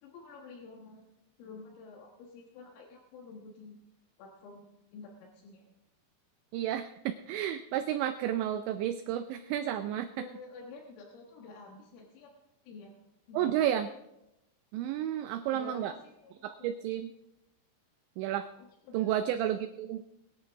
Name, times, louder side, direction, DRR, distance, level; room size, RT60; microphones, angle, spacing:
voice 1, 0.0-1.0 1.4-3.8 4.2-5.7 10.2-12.3 12.6-13.0 13.3-13.5 15.1-15.2 15.5-16.7 18.6-19.4, left 4 dB, 80° left, 0 dB, 4.0 m, -49 dB
voice 2, 6.5-10.1 13.3-13.9 14.7-15.9 16.4-17.1 18.2-18.5 18.9-20.0, right 11 dB, 85° right, 9 dB, 2.6 m, -31 dB
21.5 x 10.5 x 3.6 m, 0.88 s
omnidirectional pair, 5.9 m